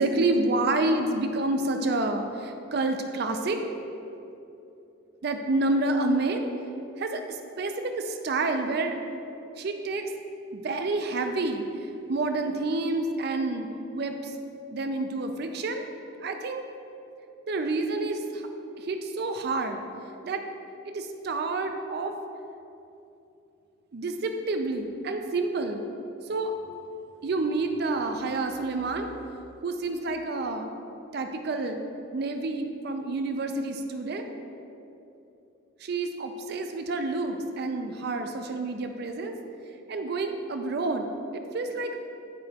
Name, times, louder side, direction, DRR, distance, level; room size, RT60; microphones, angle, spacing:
voice 1, 0.0-3.6 5.2-6.4 7.0-9.0 9.6-10.1 10.5-11.7 12.1-13.7 13.9-14.3 14.7-15.9 16.2-16.6 17.5-18.4 18.8-19.8 20.2-20.4 20.8-22.2 23.9-25.8 26.3-26.5 27.2-29.1 29.6-30.7 31.1-31.8 32.1-34.3 35.8-39.3 39.9-42.0, right 2 dB, 55° right, 6 dB, 0.4 m, -28 dB
9.6 x 4.8 x 2.8 m, 2.8 s
head